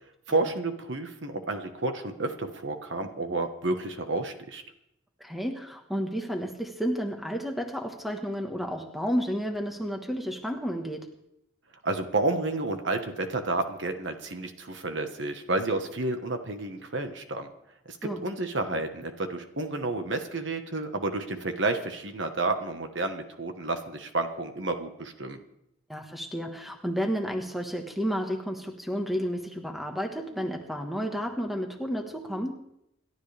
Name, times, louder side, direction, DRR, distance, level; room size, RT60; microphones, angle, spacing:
voice 1, 0.3-4.6 11.8-17.5 17.9-18.0 18.2-25.4, right 2 dB, 60° right, 7 dB, 1.3 m, -30 dB
voice 2, 5.2-11.1 18.0-18.2 25.9-32.5, equal, ahead, 3 dB, 1.4 m, -31 dB
28.0 x 12.0 x 3.4 m, 0.79 s
head